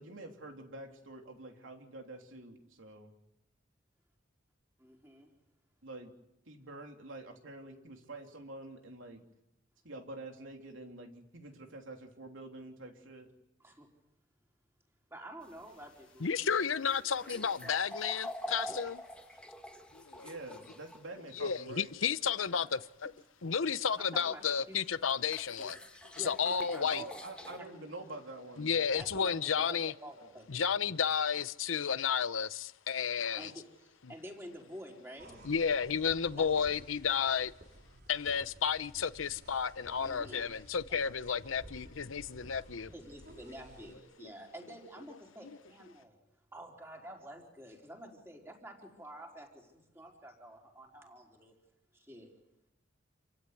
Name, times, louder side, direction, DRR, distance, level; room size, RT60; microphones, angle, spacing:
voice 1, 0.0-3.1 5.8-6.1 6.5-9.2 9.8-13.3 20.2-22.0 26.9-28.7 30.2-30.5, right 2 dB, 80° right, 3.2 m, -47 dB
voice 2, 4.8-5.3 13.6-13.9 15.1-16.4 16.8-17.7 22.5-22.7 24.0-24.8 25.6-25.7 26.1-27.1 27.6-27.7 28.9-30.5 33.4-35.4 36.4-36.5 37.0-37.2 40.0-40.5 40.9-41.0 42.9-46.2 46.5-51.5 51.9-52.3, equal, 15° right, 4.5 m, -49 dB
sound 1, 15.4-21.0 24.1-24.2 25.3-27.6, equal, 5° left, 1.7 m, -46 dB
voice 3, 16.2-19.0 19.9-20.3 21.3-23.1 23.4-25.8 26.2-27.0 28.6-29.9 30.5-33.5 34.0-34.1 35.4-37.5 38.1-42.9 44.2-44.3 45.4-45.6, left 6 dB, 85° left, 0.8 m, -32 dB
sound 2, 35.2-43.9, right 1 dB, 55° right, 4.0 m, -55 dB
28.5 x 16.5 x 9.8 m
head